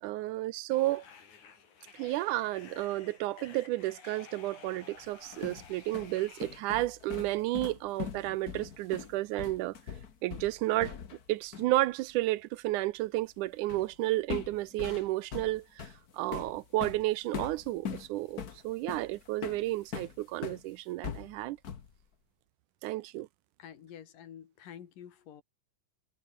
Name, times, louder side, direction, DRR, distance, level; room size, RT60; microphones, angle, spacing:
voice 1, 0.0-1.0 2.0-9.8 10.2-10.9 11.3-21.6 22.8-23.3, right 17 dB, 80° right, 2.1 m, -32 dB
sound 1, 0.7-6.6, left 6 dB, 65° left, 4.6 m, -53 dB
sound 2, 5.0-11.3 11.5-11.7 13.7-13.9 14.3-20.6 21.0-22.0, left 7 dB, 50° left, 1.2 m, -41 dB
voice 2, 23.6-25.4, left 9 dB, 90° left, 3.8 m, -49 dB
omnidirectional pair, 3.7 m